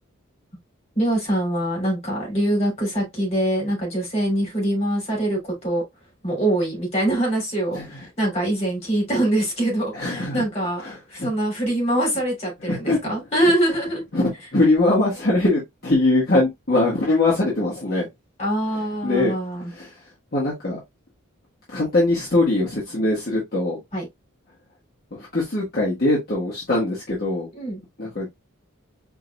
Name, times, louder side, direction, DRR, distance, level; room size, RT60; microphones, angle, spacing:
voice 1, 0.9-5.8 6.2-14.0 18.4-19.7 23.9-24.1 27.6-27.8, right 1 dB, 30° left, 3.1 m, -24 dB
voice 2, 9.9-10.4 10.8-11.3 12.7-13.0 13.4-13.5 14.1-14.2 14.5-18.1 19.0-19.3 19.7-19.9 20.3-20.8 21.7-23.8 25.1-27.5 28.0-28.3, left 2 dB, 45° left, 1.6 m, -22 dB
4.7 x 3.8 x 2.2 m
head